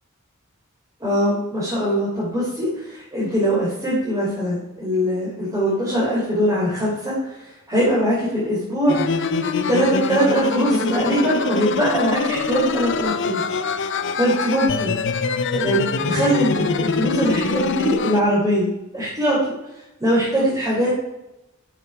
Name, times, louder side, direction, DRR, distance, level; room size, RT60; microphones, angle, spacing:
voice 1, 1.0-9.3 9.7-13.4 14.2-15.0 15.5-19.4 20.0-21.0, equal, 15° right, -7 dB, 3.5 m, -21 dB
sound 1, 8.9-18.2, left 4 dB, 60° left, 0.7 m, -24 dB
12.5 x 7.0 x 4.6 m, 0.94 s
head